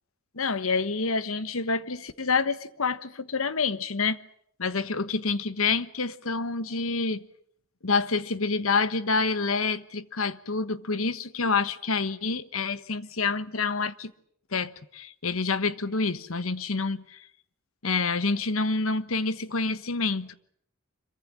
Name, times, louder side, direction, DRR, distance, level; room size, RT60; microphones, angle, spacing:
voice 1, 0.3-4.2 4.6-7.2 7.8-14.1 14.5-17.3 17.8-20.3, left 4 dB, 85° left, 1.3 m, -27 dB
26.5 x 23.5 x 7.5 m
head